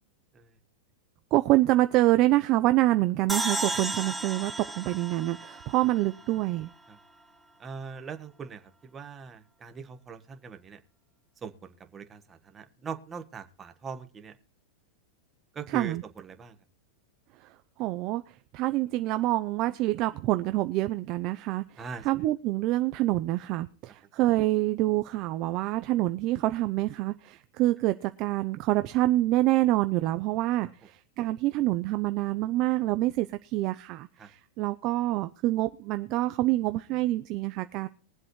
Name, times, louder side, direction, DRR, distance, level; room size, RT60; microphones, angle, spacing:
voice 1, 1.3-6.7 15.7-16.0 17.4-17.5 17.8-37.9, right 17 dB, 40° right, 0.6 m, -26 dB
sound 1, 3.3-6.6, right 2 dB, 5° right, 1.2 m, -34 dB
voice 2, 7.6-10.8 11.4-14.4 15.5-16.6 21.8-22.1 34.2-34.3, right 5 dB, 20° right, 1.5 m, -41 dB
22.5 x 7.6 x 3.2 m
supercardioid pair, 145°, 0 cm